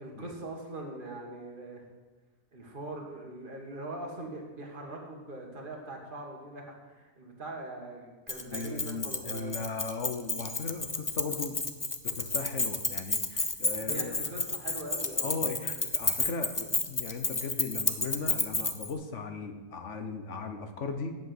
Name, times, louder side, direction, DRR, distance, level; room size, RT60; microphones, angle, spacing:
voice 1, 0.0-1.8 2.5-9.6 12.1-12.2 13.8-15.4, right 2 dB, 40° right, 0 dB, 2.1 m, -42 dB
Keys jangling, 8.3-18.9, left 3 dB, 25° left, 0.4 m, -31 dB
voice 2, 8.5-11.7 12.0-14.2 15.2-21.2, left 4 dB, 60° left, 7 dB, 1.4 m, -37 dB
9.2 x 7.8 x 7.8 m, 1.3 s
omnidirectional pair, 1.4 m